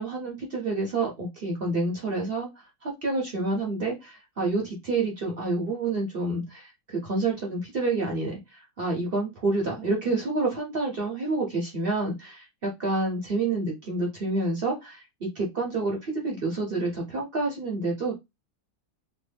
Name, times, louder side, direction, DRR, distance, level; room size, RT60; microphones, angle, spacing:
voice 1, 0.0-18.1, right 2 dB, 50° right, 0.8 m, -28 dB
3.0 x 2.2 x 3.3 m
omnidirectional pair, 1.6 m